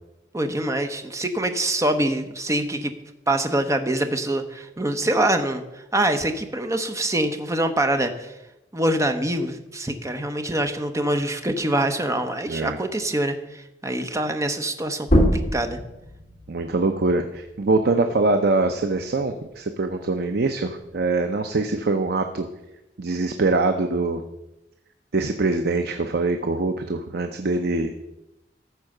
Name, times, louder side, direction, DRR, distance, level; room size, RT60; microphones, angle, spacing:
voice 1, 0.3-3.0 3.3-5.6 5.9-8.3 8.7-15.2 15.5-15.8, right 1 dB, 20° right, 7 dB, 0.8 m, -24 dB
voice 2, 12.5-12.8 16.5-22.5 23.0-24.2 25.1-27.9, right 3 dB, 65° right, 7 dB, 0.7 m, -23 dB
sound 1, 15.0-20.2 20.6-22.4, equal, 45° left, 3.6 m, -27 dB
13.5 x 4.8 x 6.6 m, 0.94 s
head